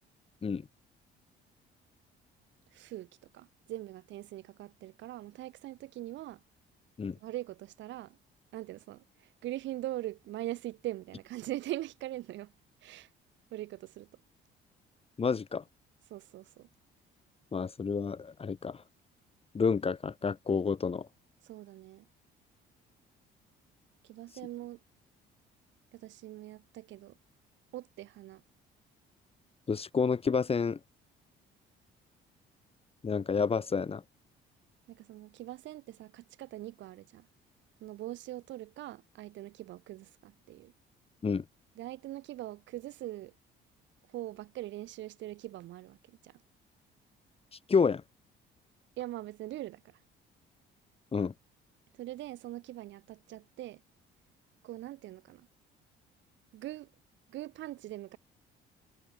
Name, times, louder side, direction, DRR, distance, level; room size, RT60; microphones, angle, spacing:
voice 1, 2.7-3.1 3.3-6.4 7.2-8.2 8.5-12.5 12.8-13.1 13.5-14.1 16.1-16.7 21.4-22.0 24.1-24.8 25.9-27.1 27.7-28.4 34.9-37.3 37.8-40.7 41.8-43.3 44.1-46.0 46.2-46.3 49.0-49.8 52.0-53.8 54.6-55.5 56.5-56.9 57.3-58.2, right 15 dB, 75° right, 6.5 m, -42 dB
voice 2, 15.2-15.6 17.5-18.8 19.5-21.1 29.7-30.8 33.0-34.0 41.2-41.4 47.7-48.0 51.1-51.3, left 5 dB, 30° left, 2.5 m, -29 dB
cardioid pair, 100°, 19 cm